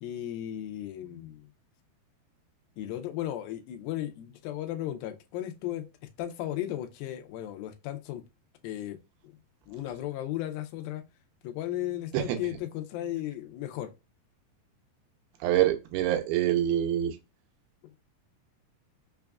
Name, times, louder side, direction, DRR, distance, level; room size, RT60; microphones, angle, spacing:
voice 1, 0.0-1.5 2.8-5.9 6.2-8.2 8.6-9.0 9.2-9.4 9.7-11.0 11.4-13.9, left 13 dB, 80° left, 2.3 m, -35 dB
voice 2, 15.4-17.2, right 12 dB, 85° right, 2.6 m, -25 dB
6.0 x 2.3 x 2.2 m
omnidirectional pair, 4.3 m